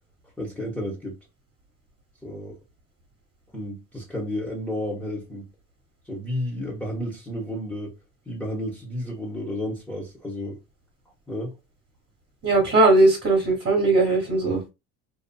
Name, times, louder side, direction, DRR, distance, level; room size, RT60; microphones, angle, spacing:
voice 1, 0.4-1.2 2.2-2.6 3.5-5.5 6.0-7.9 8.3-10.6 11.3-11.6, left 1 dB, 5° left, 1.1 m, -32 dB
voice 2, 12.4-14.6, right 2 dB, 35° right, 1.3 m, -19 dB
2.7 x 2.4 x 2.2 m
cardioid pair, 105°, 33 cm